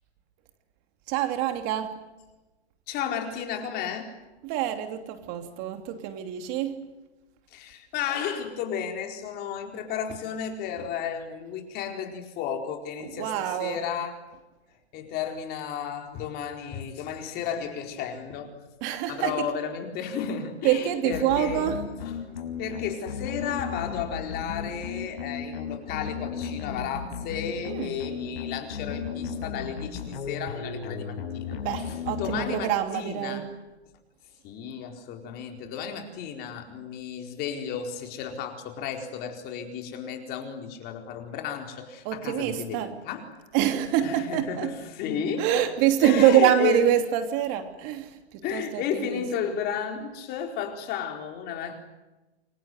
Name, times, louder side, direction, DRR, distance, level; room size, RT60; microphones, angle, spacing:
voice 1, 1.1-2.0 4.4-6.9 13.0-13.8 18.8-19.5 20.6-21.8 27.6-28.0 31.5-33.5 42.0-42.9 43.5-44.8 45.4-49.2, right 11 dB, 35° right, 7 dB, 2.9 m, -25 dB
voice 2, 2.9-4.1 7.5-14.2 14.9-18.5 19.1-21.7 22.1-22.2 22.6-31.6 31.9-33.4 34.4-43.3 44.0-45.6 46.0-46.8 48.4-51.8, left 7 dB, 30° left, 4 dB, 4.3 m, -33 dB
sound 1, 21.1-33.0, left 6 dB, 55° left, 6.3 m, -35 dB
28.5 x 24.0 x 8.0 m, 1.1 s
hypercardioid pair, 145°, 34 cm